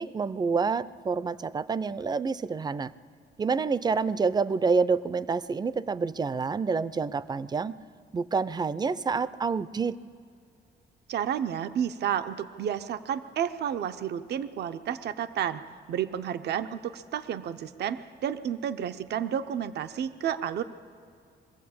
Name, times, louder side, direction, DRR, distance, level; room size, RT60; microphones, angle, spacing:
voice 1, 0.0-2.9 3.4-7.8 8.1-10.0, right 5 dB, 25° right, 17 dB, 0.5 m, -28 dB
voice 2, 11.1-15.6 15.9-20.6, right 9 dB, 70° right, 11 dB, 0.7 m, -31 dB
22.5 x 15.0 x 8.6 m, 2.4 s
cardioid pair, 125°, 18 cm